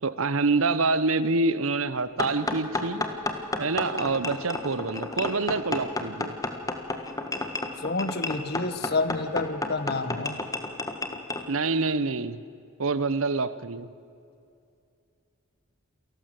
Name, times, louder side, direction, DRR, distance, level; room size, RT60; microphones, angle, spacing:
voice 1, 0.0-3.0 3.6-6.3 11.5-12.4 12.8-13.9, right 3 dB, 75° right, 15 dB, 1.0 m, -26 dB
sound 1, 2.2-11.4, left 2 dB, 15° left, 1.6 m, -31 dB
voice 2, 7.8-10.4, left 3 dB, 50° left, 13 dB, 1.1 m, -29 dB
28.5 x 12.5 x 7.8 m, 2.5 s
head